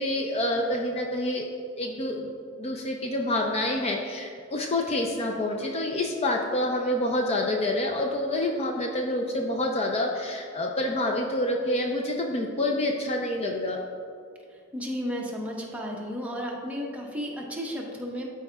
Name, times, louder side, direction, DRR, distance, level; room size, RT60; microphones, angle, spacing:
voice 1, 0.0-1.5 1.8-2.3 2.6-13.8, left 1 dB, 30° left, 2 dB, 0.5 m, -27 dB
voice 2, 14.5-18.3, equal, 5° right, -2 dB, 0.9 m, -33 dB
12.0 x 4.7 x 2.3 m, 2.3 s
head